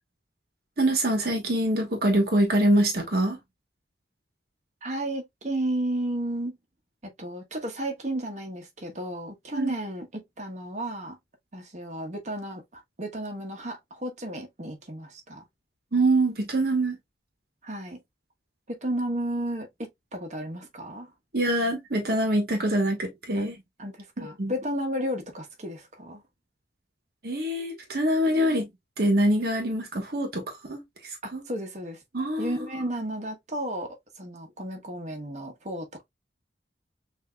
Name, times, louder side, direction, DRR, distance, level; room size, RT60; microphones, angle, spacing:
voice 1, 0.8-3.4 9.5-9.7 15.9-17.0 21.3-23.6 24.2-24.5 27.2-28.7 29.0-30.4 30.7-30.8 31.3-31.4 32.1-32.7, right 1 dB, 55° right, 1.1 m, -24 dB
voice 2, 4.8-6.6 7.0-11.2 11.5-15.4 17.6-18.0 18.7-21.1 23.3-23.4 23.8-26.2 31.2-32.0 32.4-36.1, right 1 dB, 40° right, 1.0 m, -33 dB
6.2 x 2.7 x 2.2 m
head